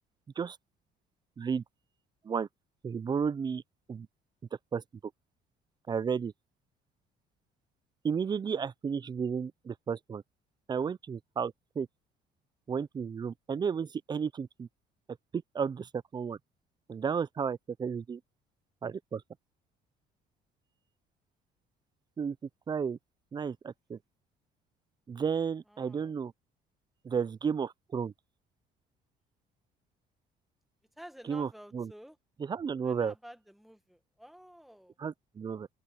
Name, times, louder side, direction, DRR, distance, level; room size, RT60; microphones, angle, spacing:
voice 1, 2.8-3.6 3.9-4.1 4.7-4.8 5.9-6.3 8.0-10.2 10.7-11.9 12.7-14.7 15.3-16.4 16.9-18.2 18.8-19.2 22.2-22.4 22.7-23.0 23.3-24.0 25.1-26.3 27.0-28.1 31.2-31.9 32.4-33.1 35.0-35.7, right 6 dB, 25° right, 0.4 m, -33 dB
voice 2, 25.7-26.1 31.0-32.2 32.8-34.9, equal, ahead, 1.4 m, -51 dB
cardioid pair, 110°, 17 cm